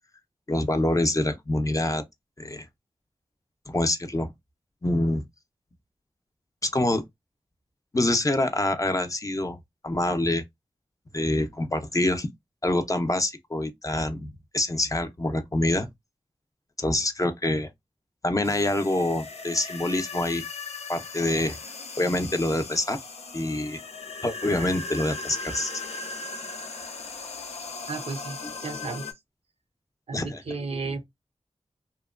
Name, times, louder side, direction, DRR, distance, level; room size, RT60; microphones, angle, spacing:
voice 1, 0.5-2.0 2.4-2.7 3.7-4.3 4.8-5.2 6.7-7.0 7.9-9.6 9.8-10.4 11.1-12.3 12.6-15.9 16.8-17.7 18.2-20.4 20.9-21.6 22.0-23.0 23.3-23.8 24.2-25.7 30.1-30.4 30.7-30.8, left 1 dB, 30° left, 0.5 m, -26 dB
sound 1, 18.4-29.1, left 3 dB, 85° left, 0.5 m, -38 dB
voice 2, 27.9-29.1 30.1-31.1, right 4 dB, 70° right, 0.5 m, -34 dB
2.8 x 2.1 x 2.4 m
wide cardioid pair, 55°, 11 cm